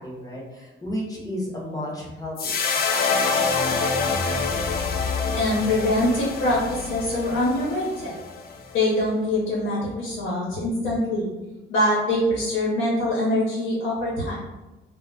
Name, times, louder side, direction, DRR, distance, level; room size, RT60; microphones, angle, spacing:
voice 1, 0.0-2.9, equal, 20° left, -4 dB, 1.0 m, -33 dB
sound 1, 2.4-8.8, left 4 dB, 50° left, 0.4 m, -26 dB
voice 2, 5.3-8.1 8.7-11.3 11.7-14.4, left 1 dB, 70° left, -6 dB, 0.9 m, -24 dB
2.3 x 2.1 x 3.9 m, 1.1 s
cardioid pair, 90°, 20 cm